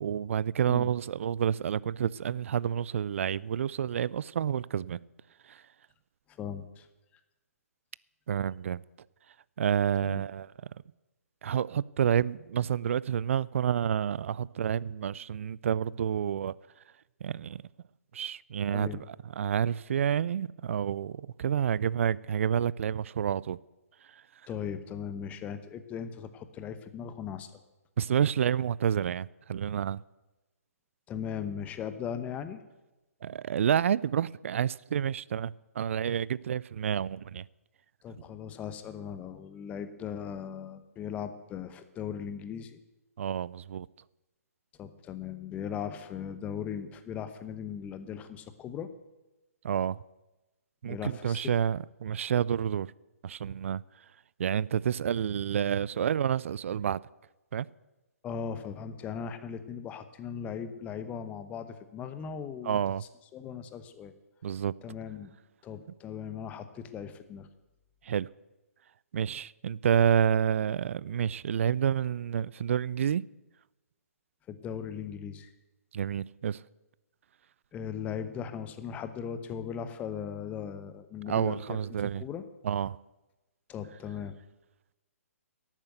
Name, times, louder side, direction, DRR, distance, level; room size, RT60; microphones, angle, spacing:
voice 1, 0.0-5.0 5.5-5.6 8.3-8.8 9.6-10.5 11.4-16.5 17.2-17.6 18.1-18.9 19.4-23.6 28.0-30.0 33.2-37.4 43.2-43.9 49.6-50.0 50.8-52.9 53.2-53.8 54.4-57.0 57.5-57.7 62.6-63.0 64.4-64.7 68.0-68.3 69.1-73.2 75.9-76.6 81.3-82.2 82.6-83.0, right 8 dB, 55° right, 0.3 m, -29 dB
voice 2, 6.4-6.9 10.0-10.2 18.7-19.0 24.5-27.5 31.1-32.6 38.0-42.8 44.8-48.9 50.8-51.4 58.2-62.8 63.3-64.1 64.8-65.3 65.6-67.5 74.5-75.5 77.7-81.8 82.2-82.4 83.7-84.4, left 7 dB, 15° left, 0.9 m, -38 dB
11.5 x 8.9 x 7.9 m
figure-of-eight pair, 135°, 8 cm